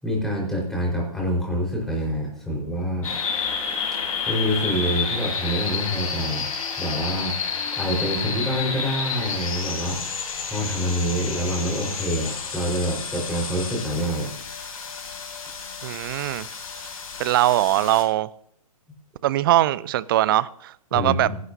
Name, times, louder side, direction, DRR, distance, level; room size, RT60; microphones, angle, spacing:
voice 1, 0.0-3.1 4.3-6.5 6.8-7.4 7.8-14.3 20.9-21.4, equal, ahead, 4.3 m, -26 dB
sound 1, 3.0-18.0, left 5 dB, 65° left, 3.8 m, -30 dB
voice 2, 15.8-16.5 17.2-18.3 19.2-21.3, right 14 dB, 35° right, 0.4 m, -21 dB
23.0 x 11.5 x 2.7 m
figure-of-eight pair, 125°, 19 cm